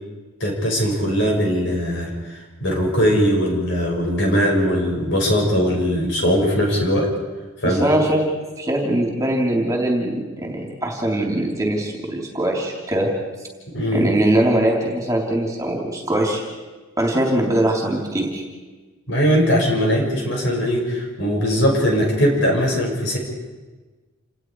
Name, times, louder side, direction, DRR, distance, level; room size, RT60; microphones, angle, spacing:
voice 1, 0.4-7.1 7.6-7.8 13.7-14.1 19.1-23.2, equal, 60° left, -1 dB, 6.1 m, -20 dB
voice 2, 7.6-8.2 8.6-13.1 13.9-16.4 17.0-18.4, right 1 dB, 15° right, -1 dB, 3.3 m, -21 dB
28.5 x 19.0 x 4.8 m, 1.3 s
head